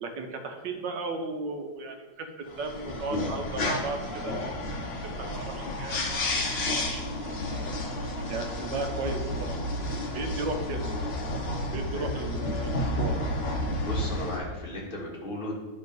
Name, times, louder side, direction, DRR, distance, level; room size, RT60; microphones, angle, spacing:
voice 1, 0.0-2.3 2.6-4.9 5.3-6.3 6.6-7.7 8.3-9.6 10.1-10.9 11.7-13.2, right 3 dB, 70° right, 4 dB, 1.5 m, -35 dB
sound 1, 2.5-14.4, left 1 dB, 60° left, 0.6 m, -31 dB
voice 2, 13.8-15.5, left 1 dB, 25° left, -4 dB, 1.8 m, -36 dB
10.0 x 3.6 x 5.3 m, 1.2 s
omnidirectional pair, 2.2 m